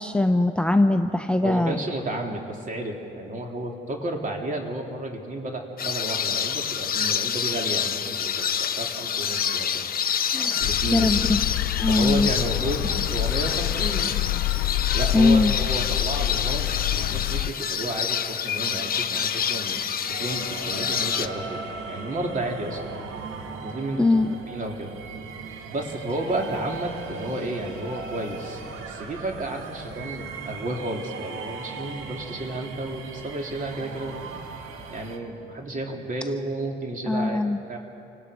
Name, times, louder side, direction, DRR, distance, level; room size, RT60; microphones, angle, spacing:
voice 1, 0.0-1.8 10.3-11.2 11.8-12.3 15.1-15.5 24.0-24.3 37.1-37.6, left 2 dB, 5° left, 8 dB, 0.7 m, -21 dB
voice 2, 1.4-9.9 10.6-11.2 11.9-14.2 14.9-16.6 16.9-21.6 21.9-22.8 23.6-24.0 24.5-24.9 25.7-34.3 34.9-37.4 37.7-37.8, right 1 dB, 40° right, 1 dB, 3.1 m, -32 dB
sound 1, 5.8-21.3, left 8 dB, 50° left, 0.9 m, -27 dB
sound 2, 10.6-17.5, left 15 dB, 85° left, 0.4 m, -27 dB
sound 3, 20.1-35.2, right 4 dB, 85° right, 1.8 m, -38 dB
28.0 x 18.5 x 5.1 m, 2.8 s
cardioid pair, 90°, 20 cm